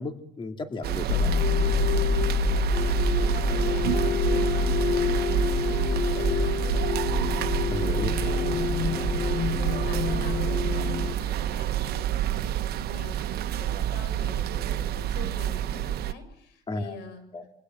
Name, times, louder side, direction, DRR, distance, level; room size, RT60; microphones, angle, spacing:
voice 1, 0.0-1.3 1.7-1.8 7.7-8.1 16.7-16.9 17.3-17.4, left 3 dB, 30° left, 6 dB, 2.5 m, -34 dB
sound 1, 0.8-16.1, right 12 dB, 70° right, 1.1 m, -28 dB
sound 2, 1.1-11.2, left 9 dB, 50° left, 1.0 m, -27 dB
voice 2, 2.3-8.7 9.1-17.2, left 4 dB, 90° left, 9 dB, 7.1 m, -44 dB
27.5 x 23.5 x 7.8 m, 0.69 s
cardioid pair, 110°, 17 cm